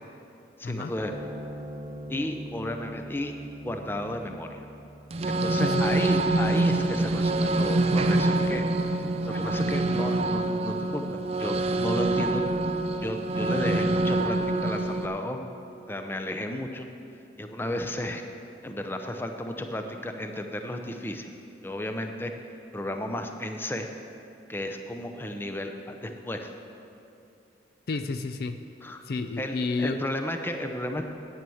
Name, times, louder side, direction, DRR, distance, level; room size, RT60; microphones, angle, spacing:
voice 1, 0.6-1.1 2.1-3.3 3.6-4.6 5.3-8.6 9.3-11.5 11.8-12.4 13.0-15.5 15.9-16.9 17.4-18.2 18.6-21.3 21.6-22.3 22.7-23.9 24.5-26.5 28.8-29.0 29.4-31.1, left 1 dB, 10° left, 5 dB, 0.6 m, -33 dB
sound 1, 1.0-7.6, equal, 20° right, 0.8 m, -43 dB
sound 2, 5.1-15.1, right 2 dB, 35° right, 0.4 m, -25 dB
voice 2, 5.6-6.0 27.9-28.6 29.0-30.0, left 3 dB, 55° left, 9 dB, 0.4 m, -30 dB
9.2 x 9.1 x 7.1 m, 2.8 s
head